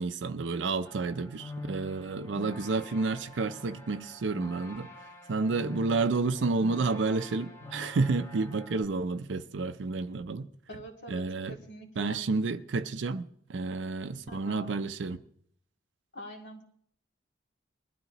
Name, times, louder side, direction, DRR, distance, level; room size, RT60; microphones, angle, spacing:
voice 1, 0.0-4.9 5.3-10.5 11.1-11.6 12.0-15.2, right 3 dB, 75° right, 0.5 m, -30 dB
sound 1, 0.9-8.9, left 1 dB, 15° left, 1.2 m, -45 dB
voice 2, 10.7-12.2 14.3-14.8 16.1-16.6, equal, 70° left, 2.3 m, -45 dB
21.0 x 12.5 x 3.0 m
head